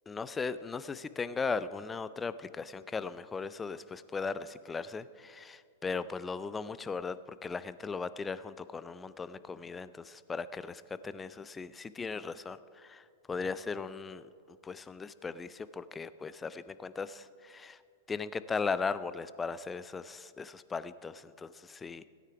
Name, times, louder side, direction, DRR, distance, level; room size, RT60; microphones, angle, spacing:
voice 1, 0.1-17.8 18.1-22.0, left 4 dB, 15° left, 15 dB, 0.4 m, -38 dB
16.5 x 9.3 x 4.7 m, 2.5 s
hypercardioid pair, 100°, 0 cm